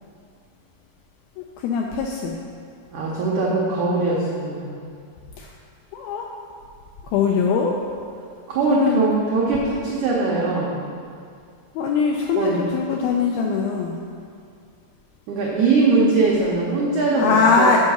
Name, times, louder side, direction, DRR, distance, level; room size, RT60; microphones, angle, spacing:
voice 1, 1.4-2.4 5.4-5.5 5.9-6.3 7.0-7.8 8.7-9.1 11.8-14.0 17.1-17.8, left 5 dB, 85° left, 0 dB, 2.1 m, -21 dB
voice 2, 2.9-4.8 8.5-10.8 12.4-12.6 15.3-17.8, right 3 dB, 80° right, -5 dB, 1.7 m, -21 dB
8.2 x 4.7 x 6.8 m, 2.3 s
omnidirectional pair, 4.8 m